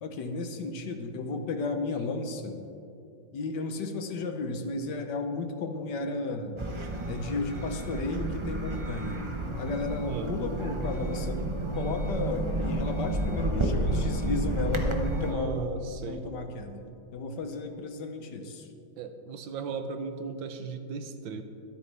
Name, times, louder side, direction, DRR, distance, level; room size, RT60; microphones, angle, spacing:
voice 1, 0.0-2.6 3.3-6.6 7.1-9.2 9.6-15.6 16.1-16.9 17.1-18.7, left 3 dB, 65° left, 6 dB, 1.5 m, -33 dB
sound 1, 6.6-15.3, right 1 dB, 30° right, 0.6 m, -31 dB
voice 2, 15.3-16.3 19.0-21.4, right 5 dB, 80° right, 7 dB, 1.6 m, -36 dB
23.5 x 8.3 x 3.4 m, 2.7 s
omnidirectional pair, 2.1 m